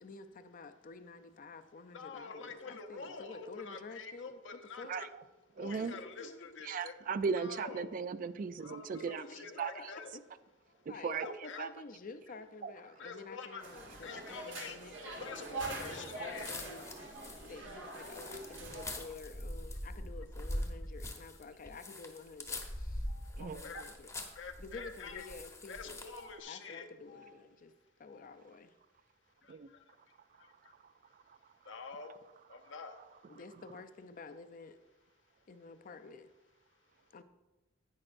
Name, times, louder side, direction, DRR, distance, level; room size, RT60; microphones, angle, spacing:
voice 1, 0.0-5.0 5.7-6.5 8.9-10.2 10.7-15.4 15.9-17.0 17.4-23.0 23.3-24.1 24.6-26.0 26.4-27.7 28.0-28.7 33.3-34.8 35.5-36.3 37.1-37.2, left 3 dB, 45° left, 10 dB, 0.5 m, -50 dB
voice 2, 1.9-5.1 5.6-6.9 7.4-7.9 8.6-10.1 11.1-11.6 13.0-13.7 14.0-14.8 15.2-16.5 23.6-23.9 24.4-25.3 25.7-27.3 31.7-32.1 32.7-32.9, left 4 dB, 75° left, 5 dB, 0.8 m, -46 dB
voice 3, 5.6-5.9 6.6-9.2 9.6-9.7 10.9-11.3 11.6-11.7 12.6-12.7 23.4-23.6 29.5-29.7, right 5 dB, 45° right, 14 dB, 0.3 m, -36 dB
sound 1, 13.6-19.0, right 3 dB, 85° right, 2.0 m, -44 dB
sound 2, 15.7-26.3, left 1 dB, 15° left, 0.9 m, -43 dB
10.5 x 8.7 x 2.5 m, 1.1 s
head